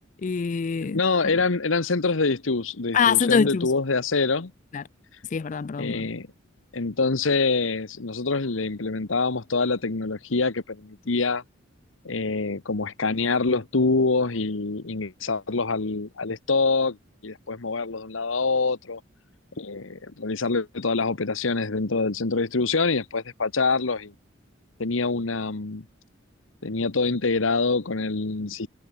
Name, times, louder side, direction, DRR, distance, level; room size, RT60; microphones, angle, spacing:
voice 1, 0.2-1.0 2.9-3.7 4.7-4.8 5.3-6.1, left 6 dB, 40° left, 0.4 m, -23 dB
voice 2, 0.8-4.5 5.8-6.3 6.7-11.4 12.0-17.0 17.2-19.0 19.6-24.1 24.8-25.8 26.6-28.7, left 3 dB, 85° left, 1.2 m, -25 dB
head